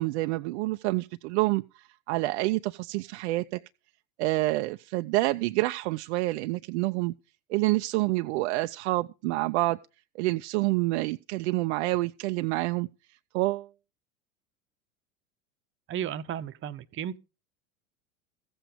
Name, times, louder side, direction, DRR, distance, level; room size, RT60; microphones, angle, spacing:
voice 1, 0.0-3.6 4.2-7.1 7.5-9.8 10.2-12.9 13.3-13.7, right 20 dB, 50° right, 0.5 m, -28 dB
voice 2, 15.9-17.2, right 10 dB, 30° right, 0.8 m, -34 dB
15.0 x 7.8 x 5.0 m
figure-of-eight pair, 80°, 42 cm